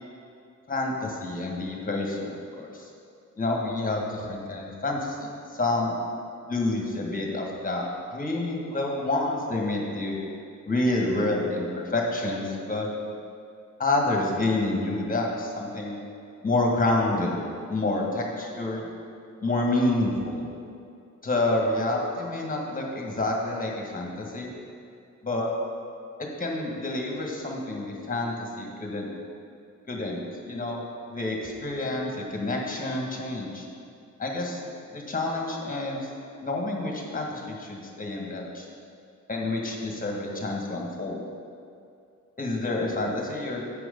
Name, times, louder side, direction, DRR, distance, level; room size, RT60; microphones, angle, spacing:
voice 1, 0.7-2.9 3.4-6.0 6.5-7.8 8.1-10.2 10.7-12.9 13.8-16.0 16.4-17.4 17.7-18.9 19.4-20.5 21.2-24.5 25.2-25.5 26.2-29.1 29.9-30.8 31.1-33.7 34.2-34.6 34.9-36.1 36.4-38.7 39.3-41.2 42.4-43.6, left 2 dB, 25° left, -1 dB, 1.5 m, -28 dB
8.7 x 6.2 x 5.2 m, 2.4 s
wide cardioid pair, 120°, 31 cm